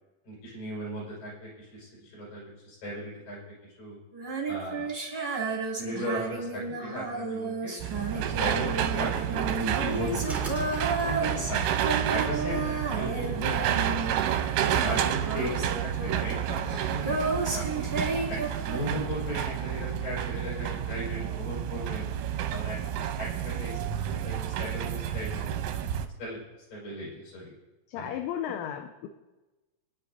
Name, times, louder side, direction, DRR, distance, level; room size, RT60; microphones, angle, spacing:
voice 1, 0.2-3.4 3.8-4.0 4.5-4.9 5.8-7.7 8.1-10.5 11.0-11.7 12.1-13.9 14.6-17.9 18.3-22.1 22.5-25.5 26.2-26.4 26.7-27.5 27.9-28.2, equal, 45° left, -4 dB, 6.7 m, -37 dB
Female singing, 4.1-14.5 14.7-19.2, right 3 dB, 25° right, 1.0 m, -32 dB
sound 1, 7.8-26.1, right 10 dB, 90° right, 3.3 m, -30 dB
sound 2, 9.4-14.3, right 3 dB, ahead, 1.3 m, -45 dB
voice 2, 27.9-29.1, left 10 dB, 80° left, 6 dB, 3.0 m, -34 dB
28.0 x 10.0 x 2.7 m, 1.1 s
omnidirectional pair, 5.8 m